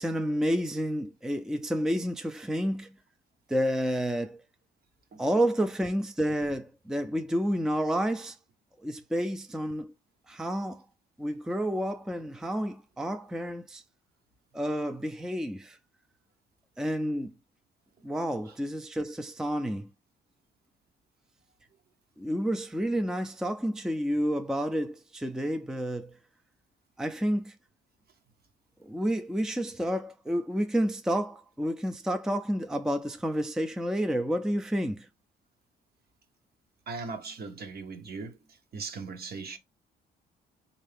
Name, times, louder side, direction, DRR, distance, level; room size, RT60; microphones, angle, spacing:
voice 1, 0.0-2.9 3.5-4.4 5.2-8.4 8.8-9.9 10.3-10.8 11.2-13.8 14.5-15.8 16.8-17.3 18.0-19.9 22.2-26.2 27.0-27.5 28.8-35.1, equal, 5° right, 0.5 m, -30 dB
voice 2, 36.9-39.6, right 4 dB, 50° right, 1.0 m, -39 dB
3.7 x 2.6 x 3.4 m
cardioid pair, 90°, 20 cm